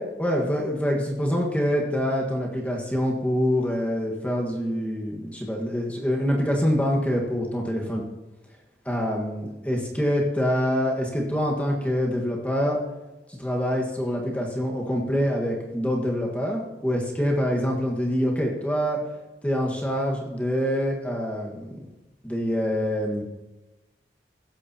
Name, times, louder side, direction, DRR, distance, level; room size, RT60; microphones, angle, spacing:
voice 1, 0.0-8.0 8.8-12.8 13.4-19.0 19.4-21.8 22.2-23.2, equal, 10° left, -1 dB, 1.5 m, -25 dB
16.0 x 13.5 x 2.9 m, 1.1 s
head